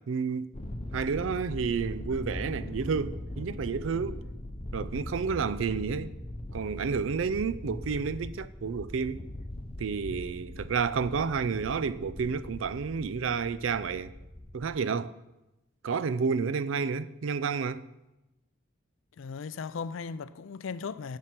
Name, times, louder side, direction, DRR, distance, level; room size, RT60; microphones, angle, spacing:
voice 1, 0.1-0.5 0.9-4.2 4.7-6.1 6.5-9.2 9.8-14.1 14.5-15.1 15.8-17.9, right 5 dB, 90° right, 0.4 m, -30 dB
Thunder, 0.5-14.7, left 1 dB, 30° left, 0.7 m, -40 dB
voice 2, 19.2-21.2, left 5 dB, 90° left, 0.4 m, -37 dB
7.5 x 6.8 x 5.9 m
head